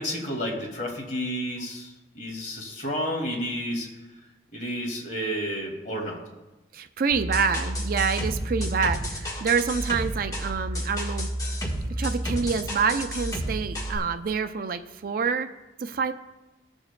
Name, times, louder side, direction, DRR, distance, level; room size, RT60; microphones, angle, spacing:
voice 1, 0.0-3.9 4.5-6.2, equal, 45° left, -1 dB, 2.2 m, -31 dB
voice 2, 6.7-11.3 11.9-15.5 15.8-16.1, right 5 dB, 50° right, 9 dB, 0.4 m, -27 dB
sound 1, 7.1-14.0, equal, 20° left, 1.4 m, -31 dB
16.0 x 7.1 x 2.2 m, 1.0 s
head